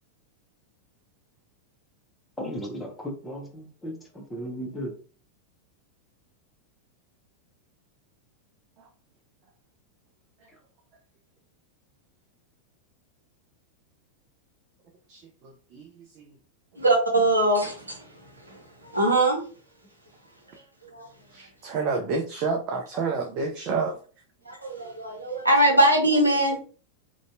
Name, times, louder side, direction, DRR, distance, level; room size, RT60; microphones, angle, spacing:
voice 1, 2.4-4.9, equal, 10° left, 2 dB, 0.6 m, -35 dB
voice 2, 15.1-15.9 16.2-16.3 21.3-24.0, right 4 dB, 40° right, 3 dB, 0.3 m, -29 dB
voice 3, 16.8-19.4 20.9-21.1 24.5-26.6, right 1 dB, 85° right, 1 dB, 0.7 m, -22 dB
2.5 x 2.2 x 2.5 m, 0.39 s
figure-of-eight pair, 90°, 0 cm